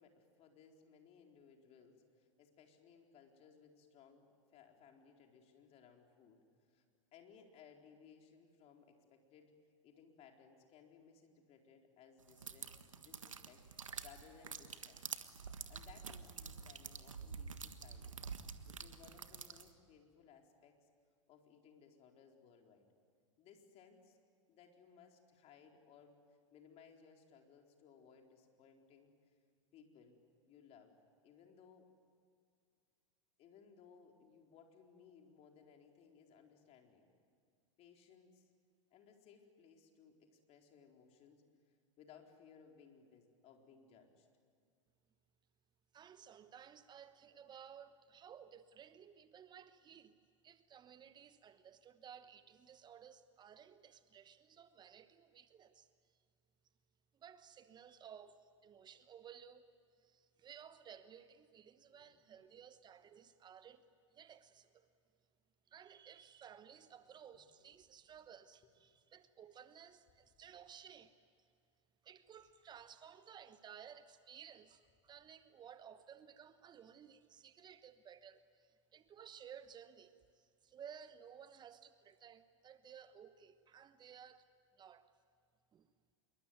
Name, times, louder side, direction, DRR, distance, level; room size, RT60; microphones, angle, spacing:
voice 1, 0.0-6.8 7.1-9.5 9.8-15.2 15.7-18.2 18.7-20.9 21.3-22.9 23.4-24.2 24.5-26.2 26.5-29.2 29.7-30.2 30.4-30.9 31.2-31.9 33.4-37.1 37.8-38.5 38.9-41.4 42.0-44.3 61.9-62.1 67.3-67.7, left 6 dB, 40° left, 4.2 m, -63 dB
Weak Water Dripping, 12.3-19.7, right 5 dB, 85° right, 1.5 m, -48 dB
voice 2, 45.9-50.2 50.4-56.2 57.1-59.6 60.0-63.8 64.1-64.9 65.7-71.5 72.0-84.5 84.8-85.1 85.7-85.9, right 8 dB, 25° right, 1.1 m, -57 dB
27.0 x 23.0 x 9.4 m
hypercardioid pair, 95°, 16 cm